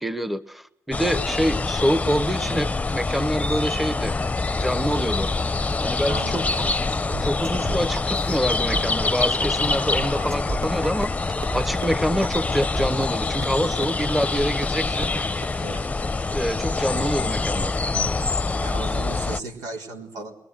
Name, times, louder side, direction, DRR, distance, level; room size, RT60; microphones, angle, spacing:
voice 1, 0.0-4.2 4.6-5.3 5.8-6.4 7.2-15.6 16.3-17.8, equal, ahead, 15 dB, 1.0 m, -26 dB
sound 1, 0.9-19.4, left 3 dB, 20° left, 0.8 m, -25 dB
voice 2, 6.1-6.8 15.6-15.9 18.6-20.4, right 3 dB, 90° right, 3 dB, 3.9 m, -36 dB
sound 2, 6.6-6.7 7.1-9.5 9.8-10.9 11.5-11.6 12.2-12.3 12.7-13.1, right 4 dB, 45° right, 5.0 m, -35 dB
sound 3, 10.6-10.7 11.0-11.1 11.4-11.5 11.8-11.9 12.2-12.3 12.6-12.7 13.0-13.1 13.4-13.5 13.8-13.9 14.2-14.3 14.6-14.7 15.0-15.1 15.4-15.5, right 5 dB, 65° right, 1.6 m, -33 dB
22.0 x 22.0 x 8.0 m, 0.81 s
cardioid pair, 85°, 6 cm